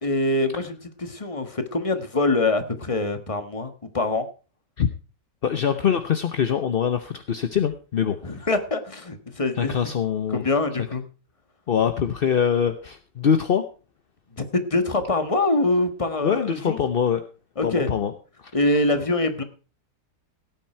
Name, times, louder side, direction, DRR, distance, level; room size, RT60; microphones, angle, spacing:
voice 1, 0.0-4.3 8.2-9.8 10.3-11.0 14.3-16.8 17.6-17.9 18.5-19.4, left 2 dB, 20° left, 9 dB, 1.3 m, -24 dB
voice 2, 5.4-8.2 9.6-10.4 11.7-13.6 16.2-17.2 17.6-18.1, left 8 dB, 50° left, 9 dB, 0.7 m, -23 dB
17.0 x 9.0 x 4.5 m, 0.35 s
omnidirectional pair, 1.9 m